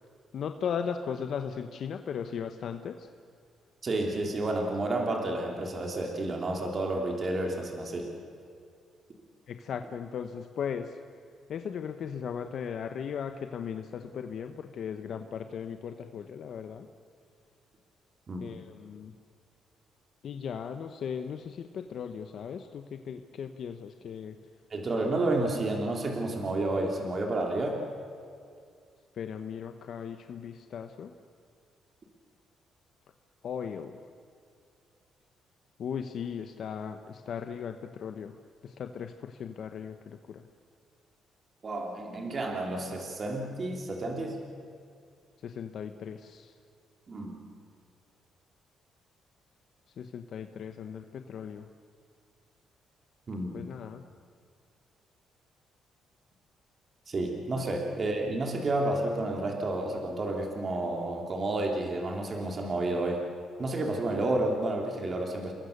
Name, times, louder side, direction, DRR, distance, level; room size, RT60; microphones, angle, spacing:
voice 1, 0.3-3.1 9.5-11.0 11.5-16.9 18.4-19.1 20.2-24.4 29.1-31.1 33.4-34.1 35.8-38.4 38.6-40.4 45.4-46.5 50.0-51.7 53.5-54.0 57.5-57.6, left 7 dB, 65° left, 7 dB, 1.1 m, -37 dB
voice 2, 3.8-8.1 18.3-18.5 24.7-27.8 41.6-44.4 47.1-47.4 53.3-53.6 57.1-63.2 63.6-65.5, right 2 dB, 40° right, 1 dB, 3.4 m, -30 dB
28.5 x 21.5 x 6.8 m, 2.3 s
cardioid pair, 90°, 0 cm